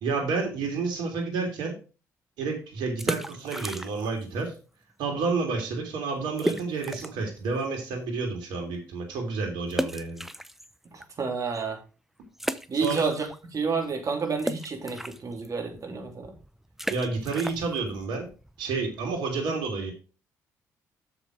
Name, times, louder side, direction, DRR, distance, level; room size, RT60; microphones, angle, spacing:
voice 1, 0.0-1.7 2.4-4.5 5.0-10.2 12.7-13.1 16.9-18.3 18.6-19.9, right 4 dB, 75° right, 2 dB, 3.0 m, -30 dB
sound 1, 2.9-4.2 4.5-4.6 5.2-5.3 5.6-5.7 6.4-7.3 7.8-7.9 9.7-11.0 11.5-11.6 12.4-13.6 13.8-19.3, equal, 5° right, 0.7 m, -34 dB
voice 2, 10.9-11.8 12.7-13.3 13.5-16.3, right 5 dB, 45° right, 2 dB, 3.2 m, -30 dB
7.0 x 6.5 x 4.8 m, 0.34 s
hypercardioid pair, 55°, 8 cm